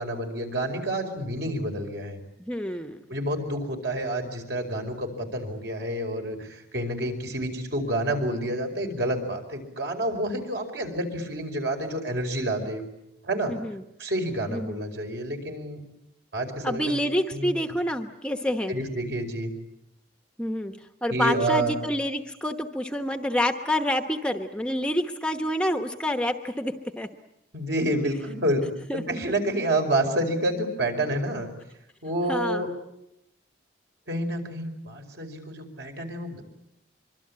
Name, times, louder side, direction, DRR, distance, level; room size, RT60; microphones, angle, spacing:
voice 1, 0.0-2.2 3.1-12.8 13.2-13.6 14.0-15.8 16.3-17.5 18.7-19.5 21.1-21.7 27.5-28.6 28.9-31.5 32.0-32.7 34.1-36.4, right 1 dB, 60° right, 4 dB, 5.0 m, -29 dB
voice 2, 2.4-3.0 13.5-13.8 14.5-14.8 16.6-18.7 20.4-20.7 21.0-27.1 28.9-29.0 32.3-32.6, left 1 dB, 5° left, 6 dB, 1.0 m, -28 dB
25.0 x 24.0 x 8.7 m, 0.83 s
head